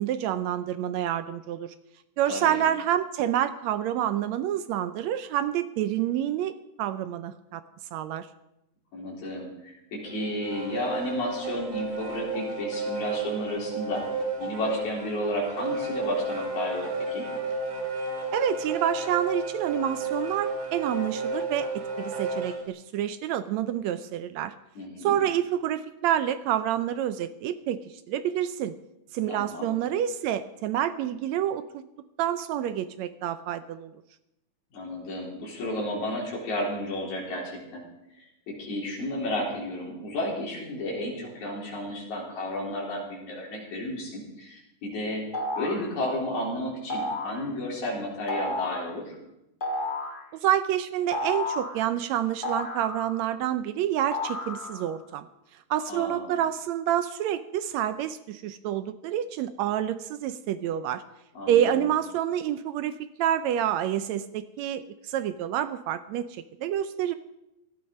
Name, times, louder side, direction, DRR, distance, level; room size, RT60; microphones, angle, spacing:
voice 1, 0.0-1.7 2.2-7.6 7.9-8.3 18.3-24.5 25.0-27.8 28.1-28.7 29.1-31.8 32.2-33.9 50.3-55.3 55.7-61.0 61.5-67.1, right 11 dB, 80° right, 12 dB, 1.7 m, -28 dB
voice 2, 8.9-14.0 14.4-17.2 24.7-25.2 29.3-29.7 34.7-37.8 38.2-45.2 45.6-49.2 55.9-56.4 61.4-61.9, left 1 dB, 65° left, -4 dB, 5.3 m, -32 dB
sound 1, 10.0-22.7, right 2 dB, 35° right, 2.3 m, -32 dB
sound 2, 45.3-45.9 46.9-47.4 48.3-48.9 49.6-50.2 51.1-51.8 52.4-53.4 54.1-54.9, left 1 dB, 35° left, 0.8 m, -32 dB
17.0 x 12.0 x 5.4 m, 0.87 s
omnidirectional pair, 3.7 m